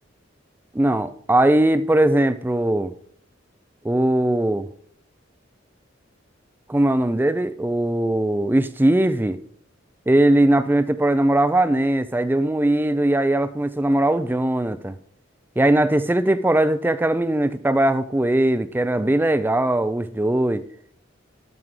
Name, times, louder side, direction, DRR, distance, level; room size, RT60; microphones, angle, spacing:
voice 1, 0.7-2.9 3.8-4.7 6.7-9.4 10.1-15.0 15.6-20.6, right 1 dB, 10° right, 0.4 m, -20 dB
12.5 x 6.2 x 3.7 m
head